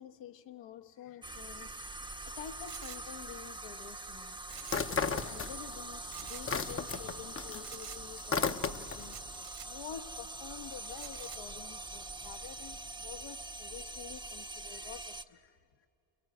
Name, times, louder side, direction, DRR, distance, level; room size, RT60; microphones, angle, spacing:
voice 1, 0.0-4.4 4.9-9.2 9.6-15.9, left 9 dB, 70° left, 1.3 m, -49 dB
sound 1, 1.2-15.2, right 2 dB, 10° right, 0.7 m, -44 dB
sound 2, 2.7-3.0 4.5-5.0 5.2-5.3 6.1-6.4 7.6-8.0 9.0-9.7 10.8-11.4, right 11 dB, 65° right, 2.0 m, -48 dB
sound 3, 4.6-5.9 6.2-9.1, left 5 dB, 30° left, 0.9 m, -34 dB
29.0 x 23.0 x 7.9 m
supercardioid pair, 65°, 47 cm